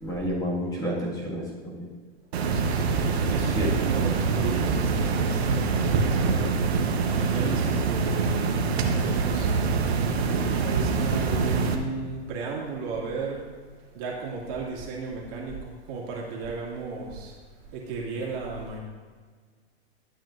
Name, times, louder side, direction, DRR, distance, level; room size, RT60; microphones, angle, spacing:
voice 1, 0.0-1.9 3.6-3.7, equal, 10° left, -5 dB, 1.9 m, -30 dB
sound 1, 2.3-11.7, right 4 dB, 70° right, 1.2 m, -25 dB
voice 2, 3.3-6.5 7.2-9.5 10.6-13.4 13.9-17.3 17.7-18.8, right 4 dB, 45° right, -3 dB, 2.4 m, -34 dB
12.5 x 8.8 x 2.6 m, 1.5 s
hypercardioid pair, 125°, 33 cm